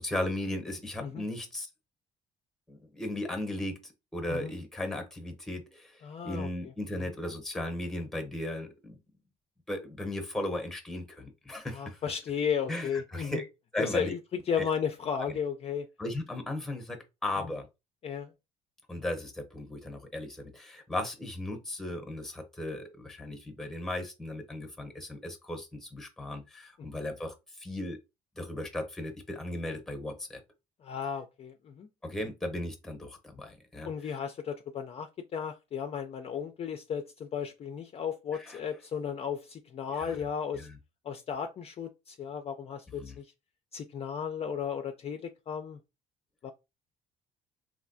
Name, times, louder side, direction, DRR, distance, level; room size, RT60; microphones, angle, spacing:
voice 1, 0.0-1.7 2.7-9.0 9.7-12.0 12.7-13.4 13.7-14.1 14.6-14.7 15.1-15.4 16.0-17.7 18.9-28.0 28.4-30.4 32.0-34.2 38.3-38.6 39.9-40.2 40.5-40.7 42.9-43.2, left 1 dB, ahead, 0.8 m, -36 dB
voice 2, 6.0-6.5 11.7-13.4 13.8-14.2 14.5-15.9 18.0-18.3 26.8-27.0 30.8-31.9 33.8-40.7 41.0-43.3 43.7-45.8 46.4-46.5, left 7 dB, 35° left, 0.4 m, -34 dB
3.2 x 2.6 x 2.5 m
cardioid pair, 110°, 17 cm